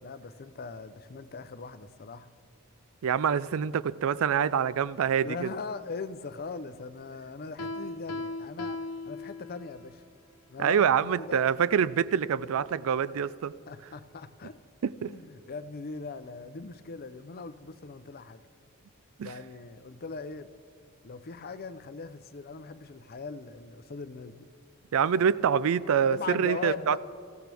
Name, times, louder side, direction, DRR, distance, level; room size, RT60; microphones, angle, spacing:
voice 1, 0.0-2.3 5.2-10.0 10.5-10.9 11.2-11.5 13.7-14.6 15.0-18.4 19.2-20.5 21.0-24.4 26.1-27.0, left 4 dB, 45° left, 0.6 m, -40 dB
voice 2, 3.0-5.5 10.6-13.5 14.8-15.1 19.2-19.3 24.9-27.0, right 7 dB, 65° right, 0.4 m, -26 dB
Piano, 7.6-9.9, left 2 dB, 90° left, 0.8 m, -37 dB
26.0 x 15.5 x 3.5 m
head